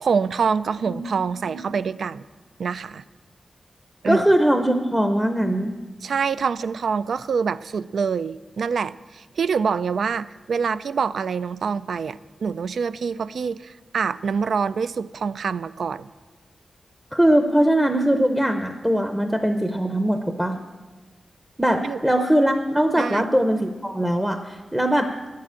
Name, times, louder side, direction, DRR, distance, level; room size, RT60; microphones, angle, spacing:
voice 1, 0.0-2.2 2.6-3.0 4.0-4.2 6.0-16.1 21.8-22.0 23.0-23.3, right 6 dB, 85° right, 16 dB, 0.3 m, -25 dB
voice 2, 4.1-5.7 17.1-20.6 21.6-25.1, right 1 dB, 5° right, 6 dB, 0.6 m, -21 dB
10.5 x 7.5 x 8.4 m, 1.3 s
wide cardioid pair, 135°, 0 cm